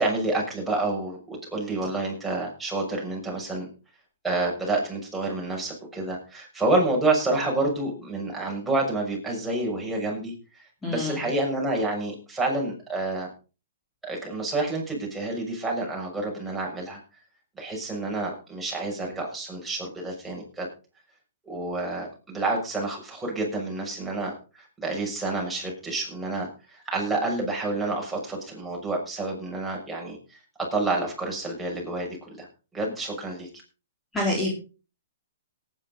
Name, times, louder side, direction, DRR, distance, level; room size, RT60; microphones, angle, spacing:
voice 1, 0.0-3.7 4.2-13.3 14.0-17.0 17.6-20.7 21.4-30.4 30.7-32.5 32.7-33.5, right 2 dB, 5° right, -2 dB, 6.4 m, -29 dB
voice 2, 10.8-11.2 34.1-34.5, left 2 dB, 15° left, -2 dB, 4.2 m, -26 dB
18.5 x 10.0 x 4.0 m, 0.34 s
hypercardioid pair, 135°, 0 cm